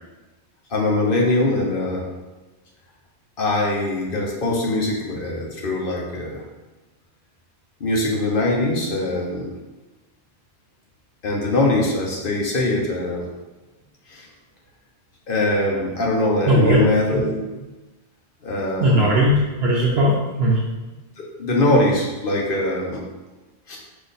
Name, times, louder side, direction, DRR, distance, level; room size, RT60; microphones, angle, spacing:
voice 1, 0.7-2.1 3.4-6.5 7.8-9.6 11.2-13.3 14.1-14.3 15.3-17.4 18.4-19.2 21.4-23.0 23.7-23.8, left 2 dB, 60° left, -1 dB, 1.0 m, -22 dB
voice 2, 16.5-16.8 18.8-20.6, equal, 75° right, -4 dB, 0.9 m, -18 dB
5.1 x 2.6 x 4.0 m, 1.2 s
omnidirectional pair, 1.1 m